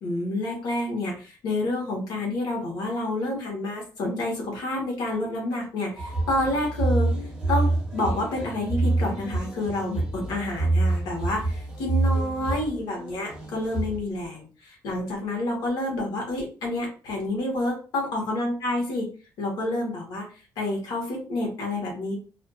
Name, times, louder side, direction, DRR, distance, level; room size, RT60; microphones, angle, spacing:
voice 1, 0.0-7.1 7.5-19.1 19.4-22.1, left 1 dB, 85° left, -1 dB, 1.0 m, -29 dB
sound 1, 6.0-14.0, right 2 dB, 15° right, 0.7 m, -27 dB
2.5 x 2.4 x 2.3 m, 0.37 s
cardioid pair, 165°, 7 cm